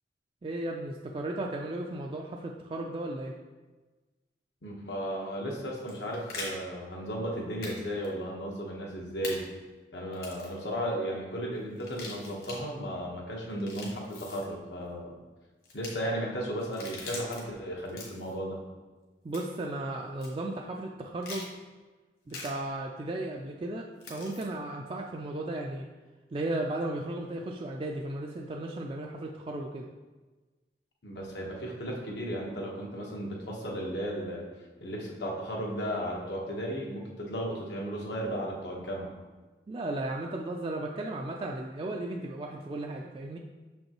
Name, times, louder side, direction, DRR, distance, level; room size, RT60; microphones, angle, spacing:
voice 1, 0.4-3.4 19.2-21.5 22.3-25.9 26.3-29.9 39.7-43.4, right 1 dB, 30° right, 0 dB, 0.3 m, -35 dB
voice 2, 4.6-9.4 9.9-15.1 15.7-18.6 31.0-34.5 34.8-39.1, equal, 75° left, -1 dB, 1.2 m, -35 dB
sound 1, 5.7-6.5 7.6-8.1 9.2-9.4 10.1-10.5 11.8-12.6 13.5-14.5 15.6-15.9 16.6-17.4 17.8-18.3 19.3-19.6 20.2-20.3 21.2-21.5 22.3-22.5 24.0-24.4, left 3 dB, 55° left, 1.5 m, -42 dB
6.4 x 5.3 x 3.0 m, 1.3 s
head